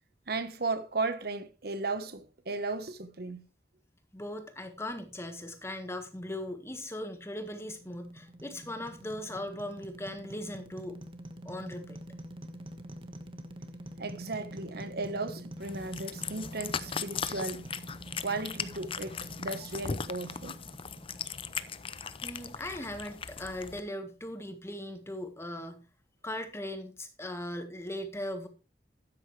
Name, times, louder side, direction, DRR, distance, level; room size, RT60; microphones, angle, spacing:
voice 1, 0.3-3.5 14.0-17.6 18.2-20.6, right 3 dB, 60° right, 1.3 m, -35 dB
voice 2, 4.1-11.0 11.4-12.0 22.2-25.8 26.2-28.5, left 1 dB, 15° left, 1.7 m, -39 dB
sound 1, 7.2-22.4, equal, 30° right, 1.4 m, -46 dB
Cat, 15.6-23.8, left 6 dB, 30° left, 0.6 m, -39 dB
12.5 x 9.4 x 3.3 m
head